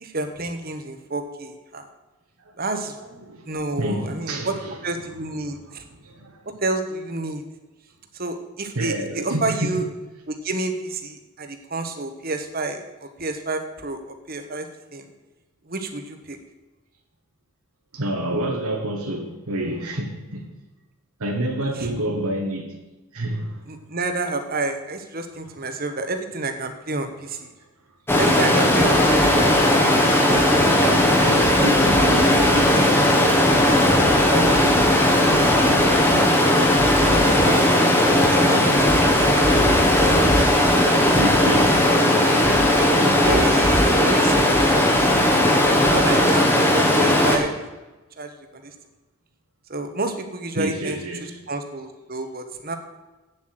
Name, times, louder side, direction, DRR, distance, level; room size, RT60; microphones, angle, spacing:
voice 1, 0.0-1.8 2.6-2.9 3.5-4.6 4.8-5.8 6.4-7.4 8.1-9.9 10.3-15.1 15.7-16.4 21.8-21.9 23.7-27.5 28.2-30.1 30.6-31.2 31.6-31.7 33.5-34.9 35.5-37.6 38.3-39.6 40.0-41.7 43.2-44.7 45.3-46.5 46.7-47.6 48.2-48.7 49.7-52.8, right 2 dB, 40° right, 7 dB, 1.2 m, -30 dB
voice 2, 3.8-4.8 5.5-5.6 5.9-6.4 8.8-9.8 17.9-20.5 21.2-22.7 23.1-23.6 31.2-32.8 41.1-43.1 46.3-46.4 50.6-51.4, right 1 dB, 80° right, 1 dB, 1.6 m, -28 dB
Stream, 28.1-47.4, left 1 dB, 10° left, 1.3 m, -17 dB
8.5 x 7.6 x 7.7 m, 1.1 s
head